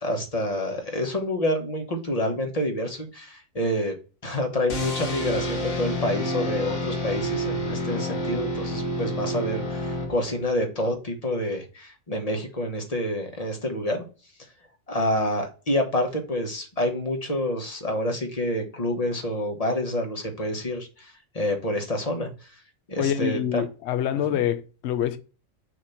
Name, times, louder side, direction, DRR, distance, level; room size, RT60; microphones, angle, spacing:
voice 1, 0.0-4.0 4.2-14.0 14.9-22.3 22.9-23.6 24.3-24.4, left 1 dB, 30° left, 1.1 m, -28 dB
sound 1, 4.7-10.6, equal, 90° left, 1.7 m, -29 dB
voice 2, 23.0-25.2, left 10 dB, 65° left, 0.9 m, -26 dB
6.5 x 2.9 x 5.6 m
omnidirectional pair, 1.4 m